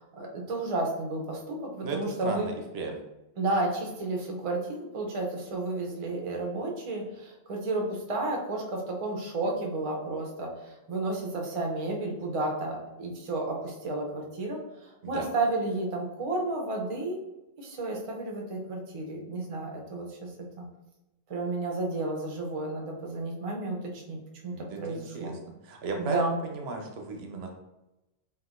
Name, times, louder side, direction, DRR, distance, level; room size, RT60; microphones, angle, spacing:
voice 1, 0.0-2.5 3.4-17.2 17.6-20.3 20.6-20.7 21.3-25.3 26.0-26.4, right 2 dB, 45° right, 0 dB, 0.4 m, -32 dB
voice 2, 1.8-3.0 15.0-15.3 24.5-25.3 25.6-27.5, right 3 dB, 70° right, 2 dB, 0.8 m, -35 dB
3.7 x 2.3 x 2.4 m, 0.96 s
omnidirectional pair, 1.2 m